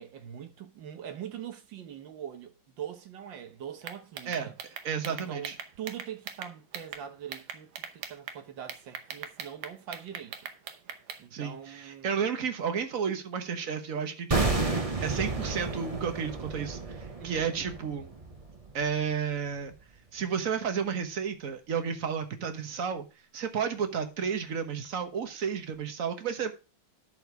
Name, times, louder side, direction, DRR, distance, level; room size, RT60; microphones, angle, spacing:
voice 1, 0.0-4.6 5.1-10.5 11.2-12.1 17.2-17.5, right 9 dB, 70° right, 1.8 m, -42 dB
sound 1, 3.8-7.0 7.3-8.4 8.7-11.2, right 8 dB, 85° right, 1.7 m, -40 dB
voice 2, 4.8-5.5 11.3-14.6 15.0-18.1 18.7-19.7 20.1-23.1 23.3-26.5, right 7 dB, 45° right, 1.5 m, -32 dB
sound 2, 14.3-19.3 19.6-19.7, right 3 dB, 25° right, 0.9 m, -32 dB
11.5 x 4.4 x 4.7 m
omnidirectional pair, 2.2 m